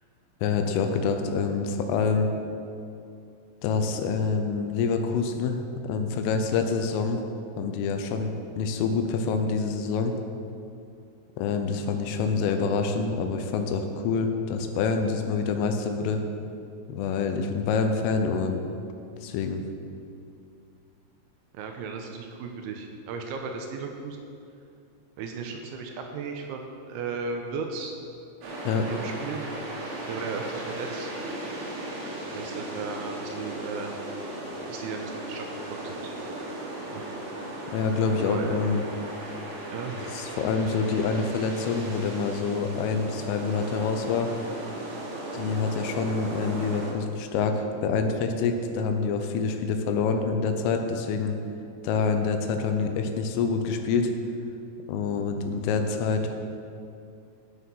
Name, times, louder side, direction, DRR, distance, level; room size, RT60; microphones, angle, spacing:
voice 1, 0.4-2.3 3.6-7.2 7.6-10.2 11.4-16.2 16.9-18.6 19.2-19.6 28.6-28.9 37.7-38.8 40.1-44.3 45.3-51.3 51.8-54.1 54.9-56.3, left 5 dB, 80° left, 6 dB, 3.3 m, -26 dB
voice 2, 21.5-24.2 25.2-27.9 28.7-29.4 30.0-31.1 32.3-34.0 34.7-36.1 36.5-36.6 36.9-37.0 37.7-37.9 38.2-38.5 39.7-40.0, right 5 dB, 85° right, 3 dB, 3.0 m, -36 dB
sound 1, 28.4-46.9, right 1 dB, 60° right, 3.2 m, -36 dB
14.0 x 6.5 x 5.5 m, 2.5 s
omnidirectional pair, 5.7 m